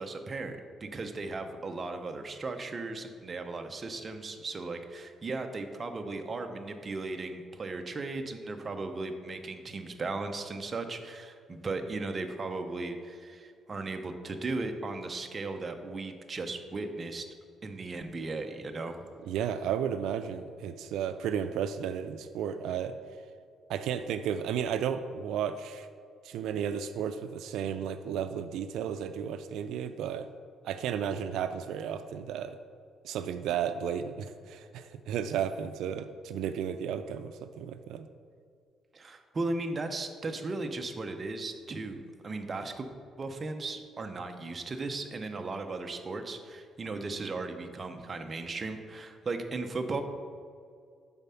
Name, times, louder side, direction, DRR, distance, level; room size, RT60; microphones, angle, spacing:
voice 1, 0.0-17.2 17.6-19.1 38.9-42.9 43.2-50.0, right 3 dB, 30° right, 6 dB, 0.5 m, -36 dB
voice 2, 19.3-22.9 23.7-25.9 26.2-30.3 30.6-32.6 33.0-38.1, right 8 dB, 90° right, 10 dB, 0.3 m, -33 dB
7.0 x 4.1 x 5.6 m, 2.3 s
cardioid pair, 150°, 0 cm